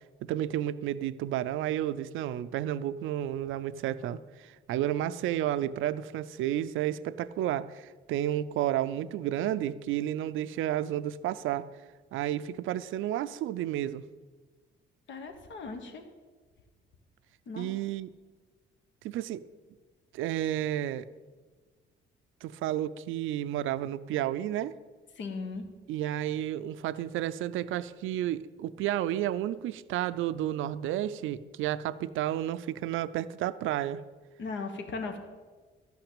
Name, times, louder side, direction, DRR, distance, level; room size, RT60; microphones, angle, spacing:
voice 1, 0.2-11.7 12.1-14.0 17.6-18.1 19.0-19.4 20.1-21.1 22.4-24.7 25.9-34.0, right 12 dB, 85° right, 14 dB, 0.5 m, -31 dB
voice 2, 15.1-16.0 17.5-17.7 25.2-25.6 34.4-35.2, left 4 dB, 70° left, 6 dB, 1.4 m, -37 dB
12.5 x 5.9 x 8.8 m, 1.4 s
cardioid pair, 90°, 20 cm